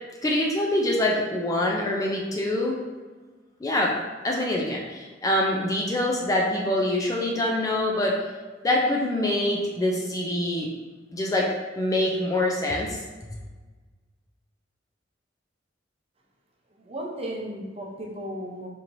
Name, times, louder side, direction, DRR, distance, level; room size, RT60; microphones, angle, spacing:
voice 1, 0.2-2.8 3.6-3.9 4.2-8.1 8.6-10.7 11.1-11.5 11.8-13.0, left 1 dB, 20° left, -1 dB, 0.4 m, -25 dB
voice 2, 16.7-18.7, right 1 dB, 35° right, -2 dB, 0.6 m, -35 dB
4.4 x 2.8 x 2.6 m, 1.3 s
head